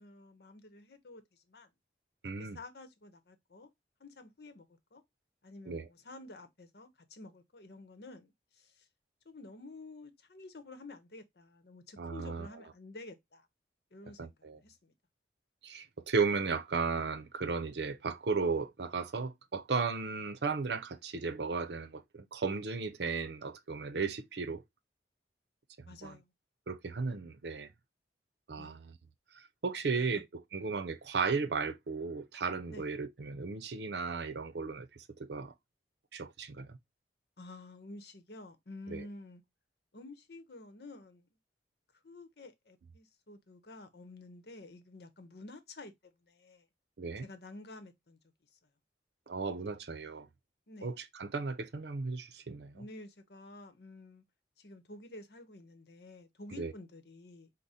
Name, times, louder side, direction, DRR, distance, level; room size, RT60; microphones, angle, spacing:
voice 1, 0.0-1.7 2.4-3.7 4.0-5.0 5.4-8.9 9.2-13.5 13.9-14.9 25.9-26.3 28.6-28.8 29.9-30.2 32.7-32.9 37.4-39.4 39.9-41.3 42.0-45.9 46.2-46.6 47.2-48.2 50.7-50.9 52.7-54.2 54.6-57.5, left 2 dB, 60° left, 0.9 m, -50 dB
voice 2, 2.2-2.6 5.7-5.9 12.0-12.5 14.2-14.6 15.6-24.6 26.0-26.2 26.7-27.7 28.5-29.0 29.4-30.2 30.5-34.9 35.2-35.5 36.1-36.8 38.9-39.0 47.0-47.2 49.3-50.3 50.8-52.8 56.5-56.7, right 4 dB, 75° right, 0.6 m, -35 dB
4.9 x 2.1 x 4.0 m
head